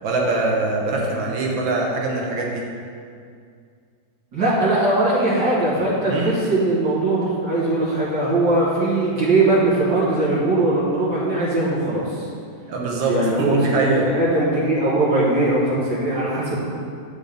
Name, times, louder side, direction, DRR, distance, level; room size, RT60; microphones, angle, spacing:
voice 1, 0.0-2.6 6.1-6.3 12.6-14.1, right 2 dB, 80° right, -1 dB, 1.7 m, -23 dB
voice 2, 4.3-12.3 13.1-16.6, right 2 dB, 65° right, -10 dB, 1.8 m, -20 dB
8.8 x 5.2 x 3.4 m, 2.2 s
omnidirectional pair, 2.1 m